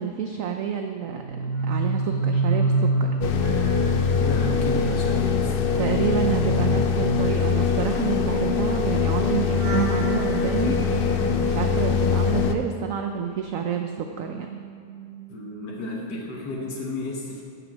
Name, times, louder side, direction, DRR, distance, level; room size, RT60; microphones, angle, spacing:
voice 1, 0.0-3.1 5.8-10.8 11.2-14.6, right 8 dB, 65° right, 4 dB, 0.9 m, -29 dB
sound 1, 1.1-13.4 13.7-15.7 16.0-16.4, right 3 dB, 80° right, 4.1 m, -29 dB
sound 2, 3.2-12.5, left 6 dB, 70° left, 0.5 m, -23 dB
voice 2, 4.1-5.8 15.3-17.4, left 2 dB, 90° left, -2 dB, 1.8 m, -33 dB
11.0 x 6.9 x 7.5 m, 2.2 s
omnidirectional pair, 1.8 m